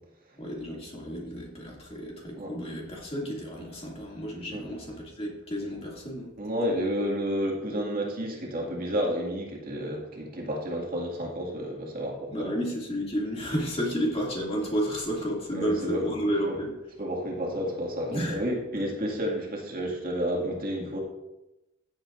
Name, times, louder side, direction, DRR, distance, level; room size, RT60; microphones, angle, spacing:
voice 1, 0.4-6.3 12.3-16.7 18.1-18.4, equal, 30° left, -3 dB, 2.6 m, -31 dB
voice 2, 6.4-12.5 15.5-16.0 16.5-16.6 17.0-21.0, equal, 50° right, -2 dB, 2.3 m, -31 dB
15.5 x 7.8 x 2.7 m, 0.96 s
head